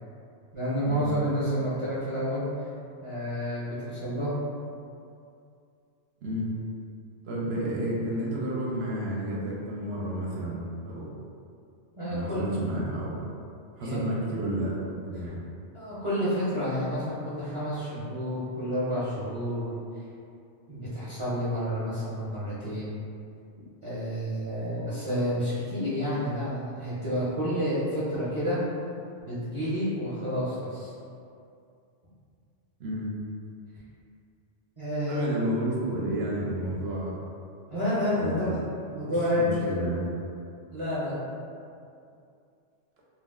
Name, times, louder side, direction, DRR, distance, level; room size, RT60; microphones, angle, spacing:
voice 1, 0.5-2.7 3.0-4.4 12.0-12.4 13.8-14.0 15.7-19.7 20.7-22.9 23.8-28.6 29.2-30.9 34.8-35.2 37.7-38.6 38.9-39.6 40.7-41.2, equal, 35° right, -12 dB, 0.6 m, -29 dB
voice 2, 7.3-11.1 12.1-13.3 13.8-15.4 24.6-24.7 32.8-33.1 35.1-37.1 38.1-38.6 39.0-40.1, right 1 dB, 65° right, -4 dB, 0.8 m, -31 dB
2.3 x 2.1 x 3.5 m, 2.4 s
omnidirectional pair, 1.2 m